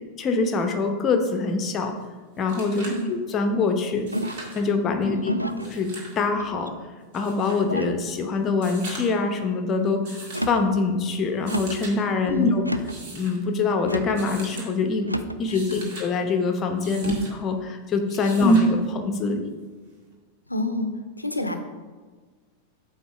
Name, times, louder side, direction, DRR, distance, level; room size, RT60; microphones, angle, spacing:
voice 1, 0.2-1.9 2.4-4.1 4.6-5.3 5.7-5.9 6.2-6.7 7.1-12.6 13.0-15.1 15.4-19.5, left 3 dB, 30° left, 5 dB, 0.8 m, -24 dB
sound 1, 2.0-2.1 2.4-3.1 4.0-4.6 5.5-6.2 7.1-7.6 8.5-9.3 10.0-10.5 11.3-11.9 12.7-13.4 14.1-14.7 15.3-16.1 16.8-17.3 18.1-18.7 20.1-20.2, right 2 dB, 50° right, 1.8 m, -41 dB
sound 2, 4.1-4.6 5.2-5.7 6.3-6.9 7.6-8.0 8.7-9.1 10.2-10.7 11.5-11.9 12.6-13.0 13.8-14.2 15.0-15.4, right 1 dB, 90° right, 0.3 m, -31 dB
voice 2, 5.0-5.5 12.2-12.5 15.5-15.6 17.0-17.2 18.4-18.5 20.5-20.9 21.2-21.5, left 1 dB, 85° left, 7 dB, 0.6 m, -29 dB
7.8 x 2.9 x 4.8 m, 1.4 s
figure-of-eight pair, 90°, 0 cm